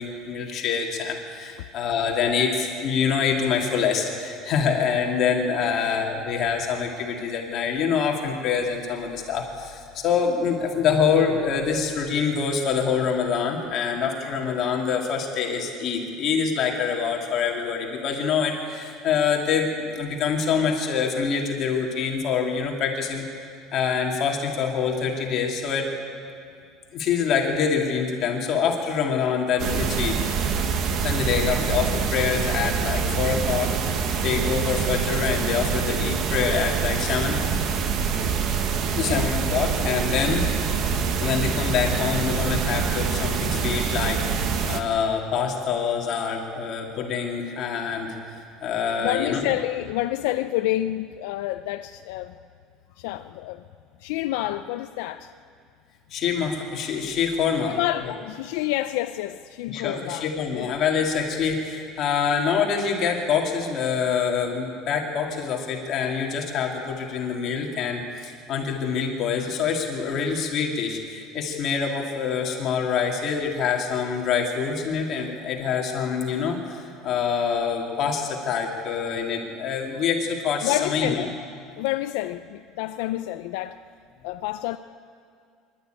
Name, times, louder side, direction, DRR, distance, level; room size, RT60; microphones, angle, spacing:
voice 1, 0.0-23.2 23.7-25.9 26.9-30.2 31.0-37.4 38.9-40.5 41.2-48.2 48.6-49.5 56.1-57.8 58.1-58.2 59.7-81.3, left 6 dB, 40° left, 2.6 m, -25 dB
sound 1, 29.6-44.8, right 6 dB, 40° right, 1.3 m, -25 dB
voice 2, 38.9-39.3 49.0-52.4 53.0-53.6 54.0-55.3 57.6-60.3 60.5-60.7 80.6-81.3 81.8-83.8 84.2-84.8, left 15 dB, 85° left, 0.5 m, -28 dB
25.0 x 12.5 x 9.2 m
cardioid pair, 165°, 0 cm